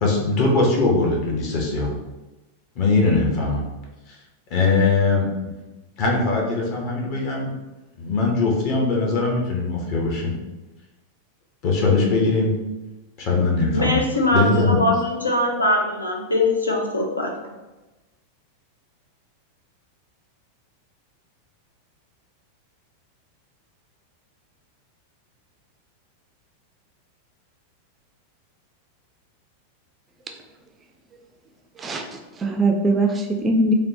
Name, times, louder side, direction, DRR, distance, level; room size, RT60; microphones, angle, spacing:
voice 1, 0.0-1.9 2.8-3.6 4.1-4.2 4.5-5.3 6.0-7.5 8.0-10.3 11.6-12.5 13.2-14.0 14.3-14.8, left 3 dB, 40° left, -1 dB, 0.8 m, -21 dB
voice 2, 13.7-17.3, left 1 dB, 80° left, 1 dB, 0.4 m, -22 dB
voice 3, 31.8-33.7, right 2 dB, 20° right, 3 dB, 0.3 m, -21 dB
3.3 x 2.1 x 2.6 m, 1.1 s
figure-of-eight pair, 90°, 0 cm